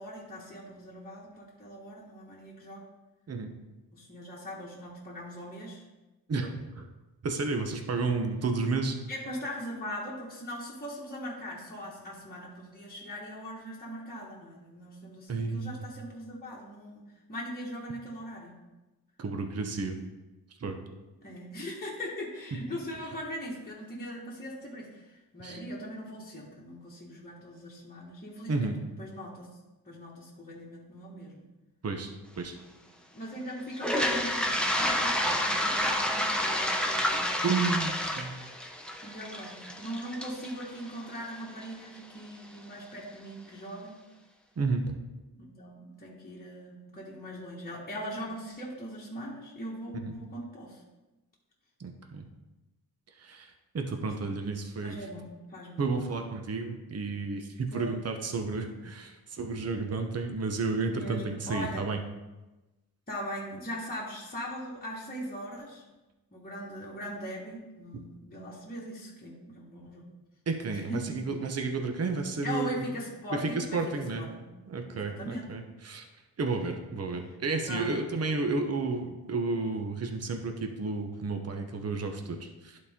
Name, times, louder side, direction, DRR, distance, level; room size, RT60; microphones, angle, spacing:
voice 1, 0.0-2.8 3.9-5.8 8.3-8.4 9.1-18.6 21.2-29.5 29.8-31.4 33.1-37.5 39.0-44.0 45.4-50.8 53.9-54.1 54.8-55.8 57.7-57.9 60.9-61.9 63.1-65.8 66.3-70.1 70.7-71.3 72.4-74.4 74.9-75.5 77.7-77.9, equal, 25° left, -5 dB, 1.6 m, -40 dB
voice 2, 6.3-6.9 7.2-9.0 15.3-15.8 19.2-20.0 20.6-20.8 25.4-25.6 28.5-28.8 31.8-32.6 37.4-38.3 44.6-44.8 50.0-50.1 51.8-52.2 53.2-55.0 55.8-62.0 67.9-68.0 70.5-72.8 73.3-74.2 74.7-76.1 76.4-82.8, right 3 dB, 40° right, 5 dB, 0.9 m, -32 dB
Toilet flush, 33.7-41.6, left 1 dB, 5° left, 0.9 m, -29 dB
11.0 x 4.2 x 3.6 m, 1.1 s
cardioid pair, 85°, 38 cm